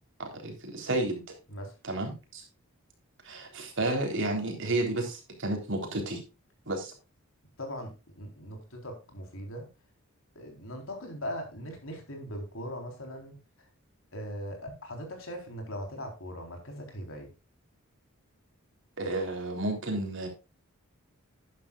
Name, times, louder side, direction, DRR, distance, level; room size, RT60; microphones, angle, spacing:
voice 1, 0.2-1.2 1.8-2.4 3.3-6.2 6.7-6.9 19.0-20.3, right 2 dB, 60° right, 3 dB, 3.7 m, -31 dB
voice 2, 7.6-9.7 10.3-13.3 14.1-17.3, equal, 65° left, 3 dB, 4.0 m, -40 dB
12.0 x 10.5 x 2.4 m, 0.28 s
head